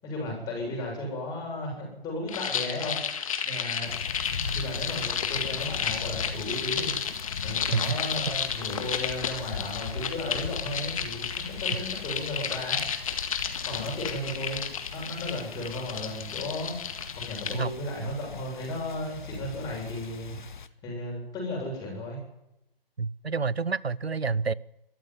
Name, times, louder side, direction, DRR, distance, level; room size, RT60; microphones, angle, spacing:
voice 1, 0.0-3.0 3.4-3.9 4.3-6.9 7.4-12.8 13.6-14.6 14.9-20.3 20.8-22.2, left 1 dB, 10° left, 7.7 m, -35 dB
sound 1, 2.3-17.6, left 7 dB, 35° left, 1.9 m, -32 dB
sound 2, 3.9-20.7, left 5 dB, 50° left, 1.4 m, -40 dB
voice 2, 23.0-24.5, right 4 dB, 85° right, 0.8 m, -28 dB
23.0 x 14.0 x 9.8 m
figure-of-eight pair, 145°, 30 cm